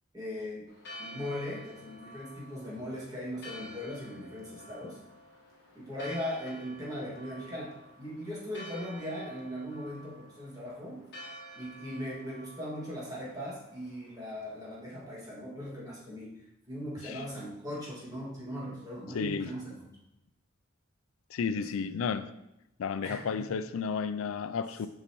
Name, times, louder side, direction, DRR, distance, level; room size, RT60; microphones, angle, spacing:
voice 1, 0.1-0.7 1.0-5.0 5.7-11.0 11.5-16.3 16.7-19.9 21.6-21.7 23.0-23.6, equal, 20° right, 2.1 m, -39 dB
Church bell, 0.7-14.8, equal, 55° left, 1.3 m, -50 dB
voice 2, 19.1-19.5 21.3-22.3 22.8-24.9, left 6 dB, 85° left, 0.4 m, -32 dB
6.9 x 5.7 x 3.0 m
head